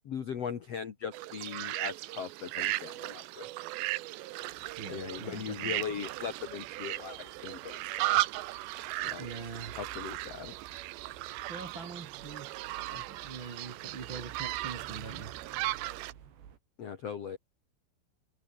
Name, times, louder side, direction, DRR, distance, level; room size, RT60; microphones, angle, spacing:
voice 1, 0.0-3.5 4.9-7.9 9.0-9.3 9.7-10.5 12.9-13.0 16.8-17.4, left 7 dB, 80° left, 1.4 m, -39 dB
sound 1, 1.1-16.1, right 18 dB, 80° right, 2.7 m, -36 dB
sound 2, 4.4-16.6, right 8 dB, 60° right, 5.1 m, -54 dB
voice 2, 4.8-6.0 9.2-9.7 11.5-12.5 13.1-15.3, right 4 dB, 40° right, 1.8 m, -43 dB
omnidirectional pair, 5.8 m